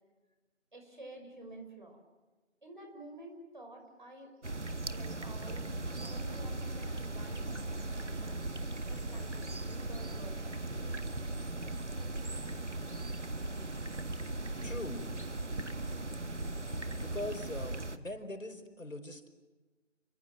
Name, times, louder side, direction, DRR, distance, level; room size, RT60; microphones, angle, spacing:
voice 1, 0.7-2.0 2.6-4.3 4.9-5.8 6.0-8.4 8.9-11.0 12.0-12.5, right 1 dB, 40° right, 3 dB, 5.9 m, -51 dB
sound 1, 4.4-18.0, right 2 dB, 65° right, 1.9 m, -38 dB
voice 2, 14.6-15.0 17.0-19.3, left 1 dB, 85° left, 8 dB, 4.9 m, -41 dB
30.0 x 24.0 x 7.7 m, 1.2 s
figure-of-eight pair, 175°, 38 cm